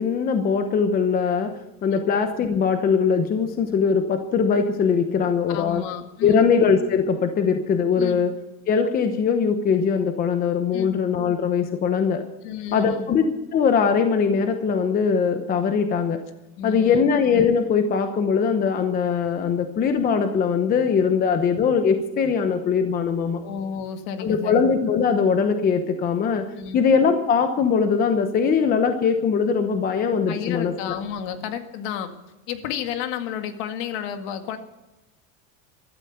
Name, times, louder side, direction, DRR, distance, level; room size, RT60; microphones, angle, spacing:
voice 1, 0.0-1.5 1.8-5.8 6.2-8.4 8.7-12.2 12.7-13.3 13.5-16.2 16.6-23.4 24.2-26.4 26.7-30.9, left 6 dB, 20° left, 7 dB, 0.9 m, -21 dB
voice 2, 5.5-6.5 8.0-8.2 10.7-11.0 12.4-13.1 16.6-17.1 23.4-24.6 26.5-26.8 30.3-32.1 32.5-34.6, left 8 dB, 55° left, 7 dB, 2.0 m, -31 dB
15.5 x 13.5 x 5.9 m, 0.97 s
supercardioid pair, 165°, 40 cm